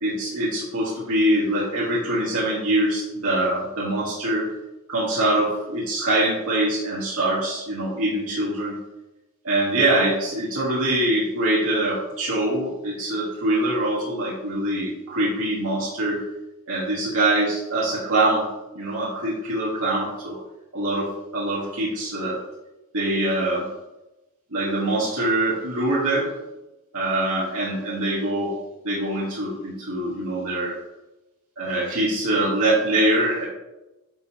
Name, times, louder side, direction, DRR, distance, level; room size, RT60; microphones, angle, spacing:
voice 1, 0.0-4.5 4.9-8.8 9.4-16.2 16.7-18.5 18.7-20.4 20.7-22.4 22.9-23.7 24.5-26.3 26.9-28.6 28.8-30.8 31.6-33.5, right 1 dB, 75° right, -7 dB, 1.7 m, -24 dB
9.3 x 5.0 x 2.9 m, 1.0 s
head